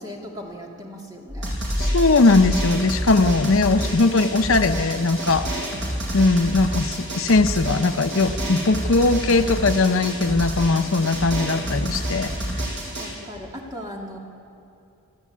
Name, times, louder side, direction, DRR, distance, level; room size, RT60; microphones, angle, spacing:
voice 1, 0.0-1.6 13.0-14.2, equal, 20° right, -1 dB, 2.6 m, -37 dB
sound 1, 1.3-4.0, left 1 dB, 10° left, 0.7 m, -29 dB
Drum, 1.4-13.1, right 1 dB, 55° right, 6.3 m, -29 dB
voice 2, 1.8-5.4 6.1-12.3, left 3 dB, 65° left, 9 dB, 0.7 m, -19 dB
28.0 x 13.0 x 8.5 m, 2.7 s
head